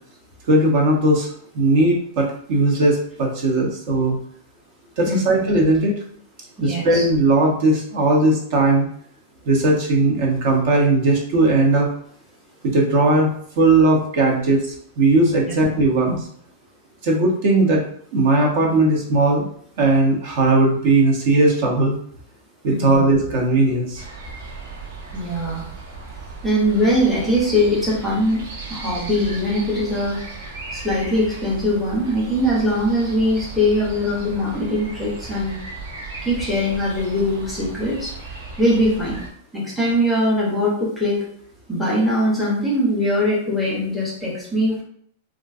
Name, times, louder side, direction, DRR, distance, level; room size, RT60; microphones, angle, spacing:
voice 1, 0.5-1.3 1.5-4.2 5.0-5.9 6.6-8.9 9.5-11.9 12.6-14.7 15.0-16.2 17.0-17.8 18.1-19.4 19.8-21.9 22.6-24.0, right 2 dB, 40° right, 0 dB, 0.7 m, -18 dB
voice 2, 6.6-7.1 22.7-23.0 25.1-25.6 26.4-30.2 30.7-35.6 36.2-39.2 39.5-41.2 41.7-44.8, equal, 5° left, -4 dB, 0.7 m, -21 dB
sound 1, 24.0-39.3, right 3 dB, 65° right, 1.2 m, -36 dB
3.7 x 2.4 x 2.4 m, 0.62 s
supercardioid pair, 180°, 0 cm